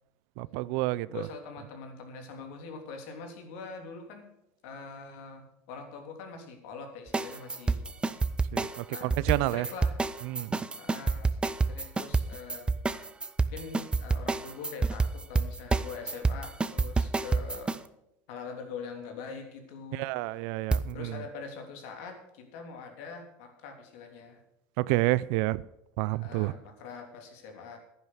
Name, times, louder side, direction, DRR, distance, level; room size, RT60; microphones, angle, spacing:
voice 1, 0.4-1.2 8.5-9.7 10.2-10.6 19.9-21.1 24.8-25.6 26.0-26.5, right 19 dB, 70° right, 0.5 m, -29 dB
voice 2, 1.1-4.3 4.6-8.2 8.9-9.1 9.5-10.0 10.8-11.4 11.6-12.8 13.5-17.7 18.3-20.1 20.9-24.4 26.1-27.8, left 5 dB, 75° left, 3.2 m, -43 dB
sound 1, 7.1-17.8 20.7-20.8, right 3 dB, 15° right, 0.7 m, -28 dB
11.0 x 10.5 x 6.2 m
supercardioid pair, 110°, 8 cm